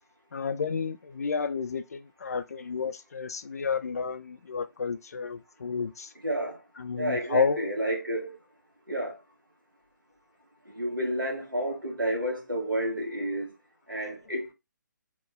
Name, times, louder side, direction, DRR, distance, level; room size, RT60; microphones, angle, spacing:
voice 1, 0.3-6.1 6.8-7.7, left 5 dB, 50° left, 0.4 m, -31 dB
voice 2, 6.2-6.6 7.0-8.4 8.9-9.2 10.7-13.5 13.9-14.5, right 1 dB, 85° right, 1.4 m, -30 dB
2.9 x 2.2 x 3.4 m
figure-of-eight pair, 140°, 11 cm